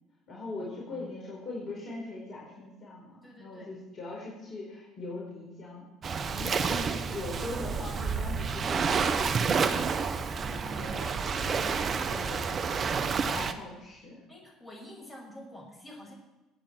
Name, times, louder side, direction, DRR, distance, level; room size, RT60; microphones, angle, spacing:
voice 1, 0.3-5.9 6.3-9.9 10.8-11.1 11.4-14.2, left 2 dB, 45° left, -3 dB, 4.5 m, -41 dB
voice 2, 3.2-3.7 6.3-7.3 10.3-11.1 12.0-12.5 14.3-16.1, left 1 dB, 20° left, -2 dB, 6.8 m, -48 dB
Waves surf, 6.0-13.5, right 5 dB, 40° right, 1.1 m, -29 dB
25.0 x 9.1 x 4.6 m, 1.1 s
hypercardioid pair, 60°, 0 cm